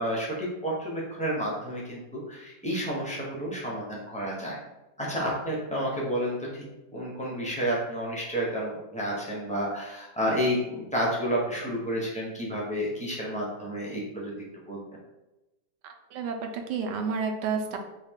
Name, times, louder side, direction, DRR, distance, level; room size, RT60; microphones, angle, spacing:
voice 1, 0.0-4.6 5.0-6.6 6.9-14.3 14.7-14.8, equal, 10° left, -4 dB, 0.3 m, -30 dB
voice 2, 15.8-17.8, right 5 dB, 85° right, 4 dB, 1.2 m, -31 dB
4.0 x 2.3 x 3.5 m, 1.0 s
omnidirectional pair, 1.8 m